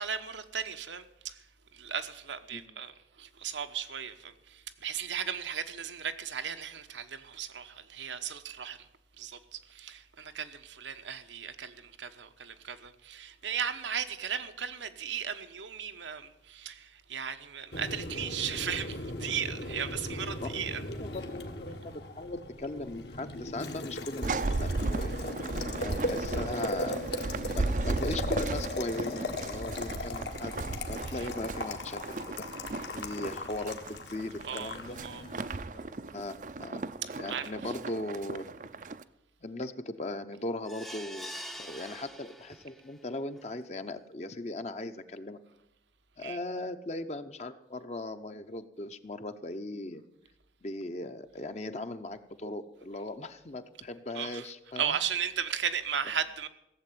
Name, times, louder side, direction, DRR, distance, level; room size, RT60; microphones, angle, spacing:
voice 1, 0.0-1.4 1.7-2.9 3.2-8.8 9.2-20.8 31.2-31.3 34.5-34.8 35.0-35.2 37.3-37.4 46.2-46.4 54.1-54.5 54.8-56.5, right 8 dB, 85° right, 1.1 m, -36 dB
Boiling, 17.7-35.6, left 1 dB, 70° left, 1.6 m, -38 dB
voice 2, 20.4-25.1 25.8-27.0 27.5-30.5 30.9-32.2 32.7-35.0 35.7-36.8 37.2-38.5 39.4-45.4 46.2-50.0 50.6-55.0, left 2 dB, 35° left, 0.7 m, -38 dB
sound 1, 24.2-39.0, right 3 dB, 45° right, 0.5 m, -36 dB
sound 2, 40.6-42.9 43.4-43.5 43.8-43.9, equal, ahead, 0.6 m, -44 dB
16.0 x 7.8 x 9.2 m
head